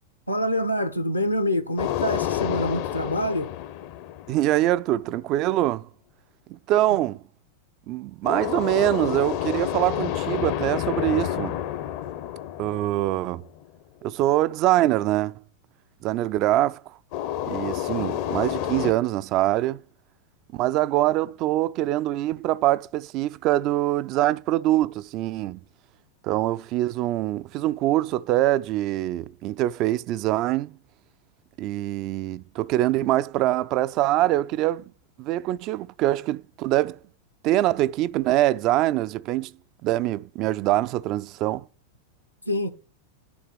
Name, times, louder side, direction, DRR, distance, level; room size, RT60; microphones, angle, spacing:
voice 1, 0.3-3.5 42.5-42.7, equal, 85° left, 0.9 m, -26 dB
sound 1, 1.8-4.8 8.2-13.6 17.1-18.9, left 11 dB, 45° left, 0.6 m, -29 dB
voice 2, 4.3-5.9 6.5-7.2 7.9-11.6 12.6-13.4 14.0-15.3 16.0-16.8 17.5-19.8 20.5-25.6 26.2-30.8 31.6-34.8 35.2-37.0 37.4-39.5 39.8-41.6, right 15 dB, 40° right, 0.3 m, -24 dB
9.4 x 3.6 x 6.1 m
figure-of-eight pair, 90°, 0 cm